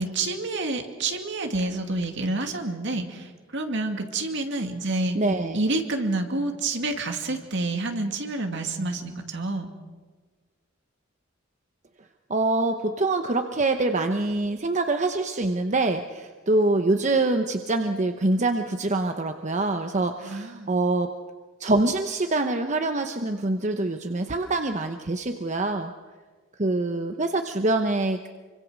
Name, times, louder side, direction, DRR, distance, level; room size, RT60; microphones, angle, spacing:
voice 1, 0.0-5.2 5.5-9.7 20.2-20.8, right 2 dB, 65° right, 4 dB, 2.5 m, -28 dB
voice 2, 5.1-5.6 12.3-21.1 21.6-25.9 26.6-28.3, right 2 dB, 35° right, 6 dB, 0.9 m, -25 dB
26.0 x 24.5 x 6.3 m, 1.4 s
head